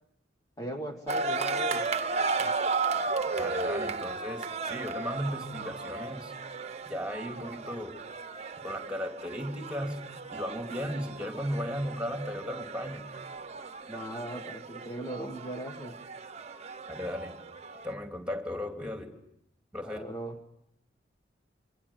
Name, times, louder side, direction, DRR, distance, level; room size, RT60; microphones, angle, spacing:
voice 1, 0.6-1.9 2.2-2.5 13.9-16.0 19.8-20.4, right 1 dB, 20° left, 4 dB, 1.5 m, -39 dB
sound 1, 1.1-17.9, right 4 dB, 35° right, 1.1 m, -35 dB
voice 2, 3.4-6.3 6.9-8.0 8.6-10.0 10.3-13.0 16.9-17.3 17.8-19.1 19.7-20.0, equal, 5° right, 4 dB, 3.4 m, -35 dB
26.5 x 25.0 x 9.0 m, 0.75 s
head